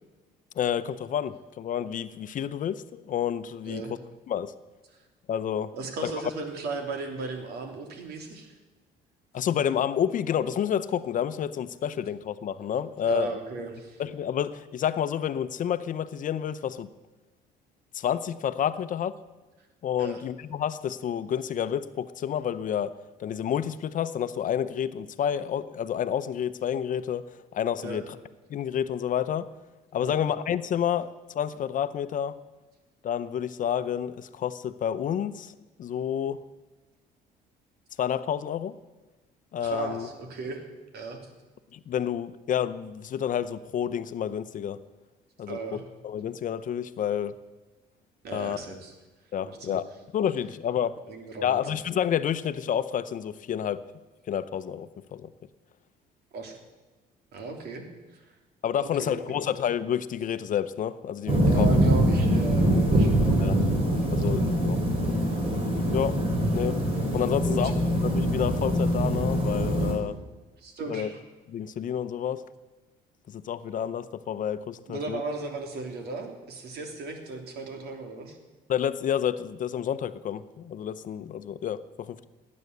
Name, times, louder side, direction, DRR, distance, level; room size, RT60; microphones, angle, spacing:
voice 1, 0.6-3.8 4.3-4.5 5.3-5.7 6.0-6.1 9.3-13.3 14.0-16.9 17.9-19.1 19.8-22.9 23.2-27.2 27.5-28.0 28.5-29.5 29.9-32.4 33.0-35.5 35.8-36.4 38.0-38.7 39.5-40.1 41.7-44.8 45.4-45.6 46.0-47.3 48.3-48.6 49.3-49.8 50.1-51.0 51.4-53.8 54.3-55.3 58.6-61.7 63.4-63.6 64.1-64.8 65.9-66.2 66.5-66.8 67.1-67.7 68.0-70.2 70.9-71.1 71.5-72.4 73.3-75.2 78.7-82.3, left 9 dB, 50° left, 13 dB, 0.8 m, -29 dB
voice 2, 5.7-8.5 13.0-14.0 20.0-20.2 27.8-28.0 30.0-30.2 39.6-40.6 40.9-41.2 45.5-45.8 48.2-48.9 49.4-49.8 51.1-51.6 56.3-56.6 57.3-57.8 58.1-58.3 58.8-59.4 61.4-63.5 67.3-67.7 70.6-71.2 74.9-78.4, right 3 dB, 70° right, 4 dB, 3.2 m, -36 dB
sound 1, 61.3-69.9, right 1 dB, 35° right, 5.0 m, -23 dB
17.5 x 9.7 x 8.1 m, 1.2 s
cardioid pair, 110°, 17 cm